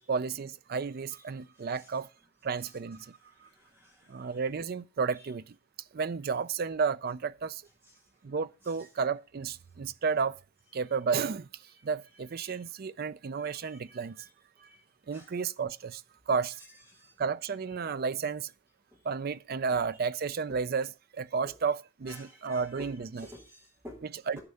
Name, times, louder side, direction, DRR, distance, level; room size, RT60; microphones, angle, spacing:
voice 1, 0.1-2.1 2.4-3.2 4.1-5.5 5.9-7.6 8.2-10.4 10.7-11.5 11.8-14.3 15.1-16.0 16.3-16.6 17.2-18.5 19.0-23.3 24.0-24.4, right 5 dB, 45° right, 0.4 m, -32 dB
voice 2, 3.4-4.0 12.4-12.5 13.4-13.8 14.6-14.8 15.1-15.3 17.0-17.1 22.1-22.9 23.2-24.0, left 1 dB, 10° right, 1.7 m, -50 dB
9.7 x 5.4 x 6.8 m
head